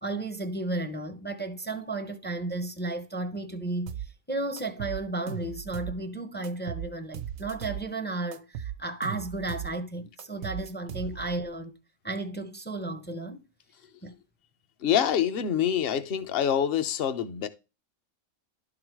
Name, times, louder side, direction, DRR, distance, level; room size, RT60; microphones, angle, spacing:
voice 1, 0.0-11.7 12.0-13.4 14.0-14.1, right 2 dB, 15° left, 0.4 m, -33 dB
sound 1, 3.9-4.1 4.6-6.0 6.4-7.9 8.3-9.7 10.2-11.4, right 10 dB, 75° right, 1.0 m, -37 dB
voice 2, 14.8-17.5, left 9 dB, 50° left, 0.8 m, -26 dB
11.5 x 3.9 x 4.6 m
omnidirectional pair, 1.4 m